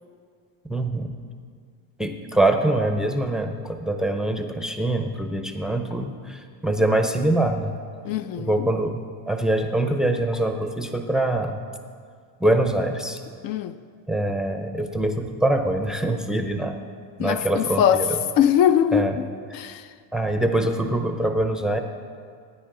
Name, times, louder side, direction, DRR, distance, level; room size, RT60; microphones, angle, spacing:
voice 1, 0.7-1.1 2.0-7.7 8.4-11.6 12.4-13.2 14.1-16.8 17.2-18.2 18.9-19.2 20.1-21.8, right 1 dB, ahead, 6 dB, 0.5 m, -24 dB
voice 2, 8.0-8.7 13.4-13.7 17.2-18.1 18.4-19.3 19.5-19.9, left 9 dB, 55° left, 11 dB, 0.5 m, -21 dB
18.5 x 9.4 x 3.8 m, 2.1 s
cardioid pair, 130°, 43 cm